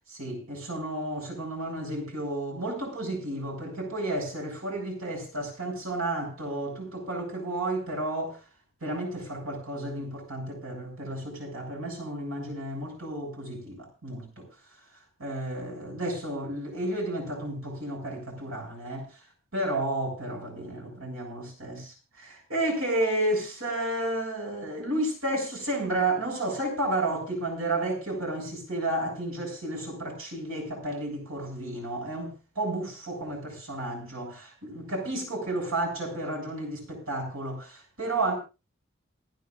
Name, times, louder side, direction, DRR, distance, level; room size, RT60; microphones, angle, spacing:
voice 1, 0.1-8.4 8.8-14.5 15.2-19.1 19.5-21.8 22.2-38.3, right 1 dB, 85° right, 7.5 m, -32 dB
28.5 x 10.5 x 2.6 m
head